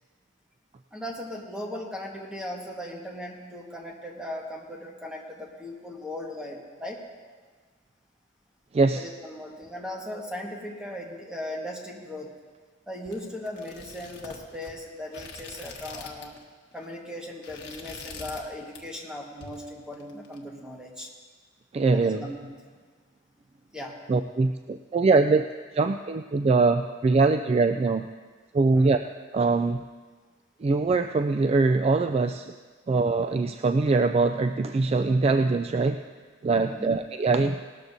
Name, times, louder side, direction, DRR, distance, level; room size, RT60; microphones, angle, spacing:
voice 1, 0.9-7.0 8.9-12.3 12.9-16.3 16.7-21.1 21.9-22.4 22.6-22.7 23.7-24.0 28.7-29.0 36.6-37.0, left 1 dB, 5° right, -1 dB, 1.5 m, -38 dB
voice 2, 8.7-9.1 21.7-22.2 24.1-25.5 25.7-28.1 28.5-29.0 29.3-29.8 30.6-32.5 32.9-36.0 36.4-37.6, right 3 dB, 30° right, 7 dB, 0.3 m, -23 dB
Book scrolling, 13.0-16.4 16.7-16.9 17.3-18.5 18.7-19.1 19.4-20.4, left 4 dB, 60° left, 1.4 m, -44 dB
18.5 x 13.0 x 2.7 m, 1.5 s
head